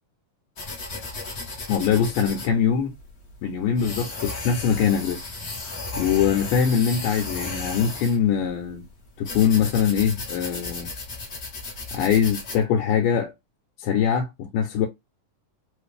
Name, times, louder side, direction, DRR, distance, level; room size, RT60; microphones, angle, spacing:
sound 1, 0.6-12.6, left 3 dB, 55° left, 0.9 m, -35 dB
voice 1, 1.7-2.9 3.4-5.2 6.0-8.8 9.2-10.9 11.9-13.3 13.8-14.9, left 7 dB, 90° left, 2.3 m, -22 dB
4.9 x 2.5 x 3.2 m
omnidirectional pair, 3.7 m